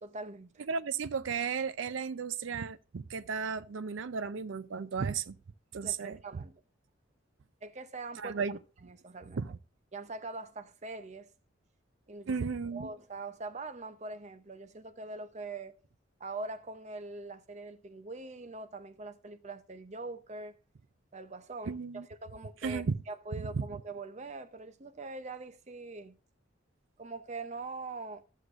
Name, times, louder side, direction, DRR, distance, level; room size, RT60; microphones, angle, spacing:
voice 1, 0.0-0.7 5.8-6.6 7.6-8.4 8.8-9.4 9.9-11.3 12.1-12.4 12.7-15.8 16.2-20.6 21.1-26.2 27.0-28.2, right 3 dB, 35° right, 0.6 m, -43 dB
voice 2, 0.6-5.4 5.7-6.2 8.2-8.6 9.4-9.6 12.3-12.9 21.7-22.1 22.6-23.0 23.4-23.7, right 5 dB, 75° right, 0.5 m, -34 dB
15.0 x 6.4 x 2.5 m
head